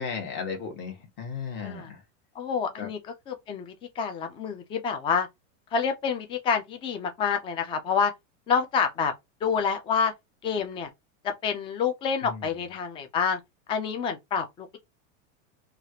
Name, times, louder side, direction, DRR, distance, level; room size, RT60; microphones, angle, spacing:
voice 1, 0.0-2.0 2.8-2.9 12.2-12.5, left 5 dB, 30° left, 1.2 m, -35 dB
voice 2, 2.4-3.0 3.3-5.3 5.7-8.1 8.5-9.1 9.4-10.1 10.4-10.9 11.2-13.4 13.7-14.8, left 6 dB, 15° left, 0.4 m, -28 dB
3.0 x 2.4 x 2.8 m
supercardioid pair, 145°, 37 cm